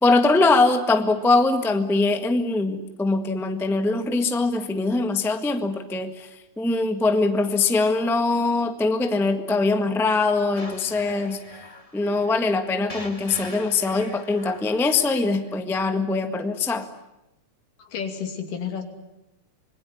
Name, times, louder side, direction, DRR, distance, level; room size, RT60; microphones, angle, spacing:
voice 1, 0.0-11.4 11.9-16.9, left 3 dB, ahead, 7 dB, 0.5 m, -22 dB
sound 1, 10.5-15.6, left 1 dB, 20° left, 1.0 m, -43 dB
voice 2, 17.8-18.8, left 7 dB, 80° left, 5 dB, 4.3 m, -31 dB
26.5 x 21.0 x 9.9 m, 0.94 s
omnidirectional pair, 3.7 m